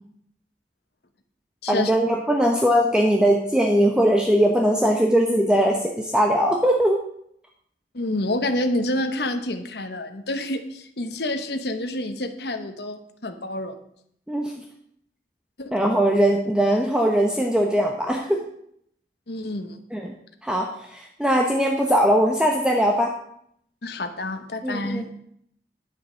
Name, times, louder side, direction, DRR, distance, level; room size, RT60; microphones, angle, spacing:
voice 1, 1.7-7.0 14.3-14.5 15.7-18.4 19.9-20.1 20.4-23.1 24.6-25.0, equal, 5° right, 1 dB, 0.9 m, -20 dB
voice 2, 7.9-13.8 15.6-15.7 19.3-19.8 23.8-25.0, left 1 dB, 65° left, 7 dB, 1.1 m, -28 dB
9.7 x 7.8 x 6.3 m, 0.69 s
head